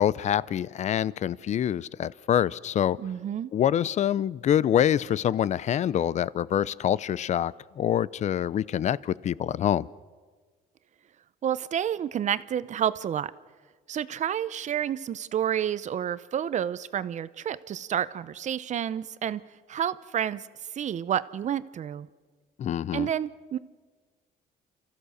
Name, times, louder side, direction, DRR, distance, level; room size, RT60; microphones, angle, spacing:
voice 1, 0.0-3.0 3.5-9.9 22.6-23.1, left 10 dB, 45° left, 21 dB, 0.5 m, -25 dB
voice 2, 3.0-3.5 11.4-13.3 13.9-19.4 19.7-20.4 20.7-22.1 22.9-23.6, right 9 dB, 45° right, 16 dB, 0.7 m, -29 dB
29.0 x 15.0 x 6.6 m, 1.5 s
cardioid pair, 110°, 17 cm